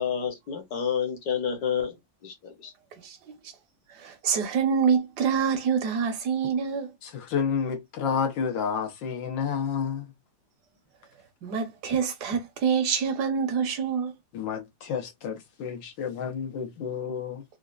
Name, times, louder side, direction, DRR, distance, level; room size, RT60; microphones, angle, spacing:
voice 1, 0.0-2.0 2.2-2.7, left 7 dB, 60° left, 1.4 m, -29 dB
voice 2, 4.0-6.9 11.4-14.1, right 6 dB, 65° right, 1.4 m, -26 dB
voice 3, 7.0-10.1 14.3-17.4, left 7 dB, 85° left, 1.7 m, -30 dB
4.3 x 2.4 x 2.3 m
omnidirectional pair, 2.0 m